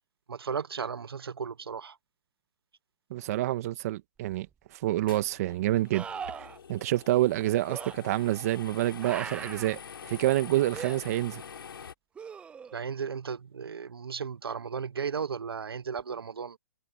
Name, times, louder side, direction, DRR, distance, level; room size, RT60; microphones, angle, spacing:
voice 1, 0.3-2.0 12.7-16.6, right 6 dB, 85° right, 1.2 m, -35 dB
voice 2, 3.1-4.5 4.7-6.0 6.7-11.4, right 15 dB, 40° right, 1.9 m, -27 dB
sound 1, 4.3-4.4 5.9-6.6 7.7-7.9 9.0-9.8 10.7-11.0 12.2-12.8 16.0-16.1, right 6 dB, 10° right, 0.8 m, -39 dB
sound 2, 5.1-11.9, left 7 dB, 75° left, 6.0 m, -46 dB
hypercardioid pair, 150°, 12 cm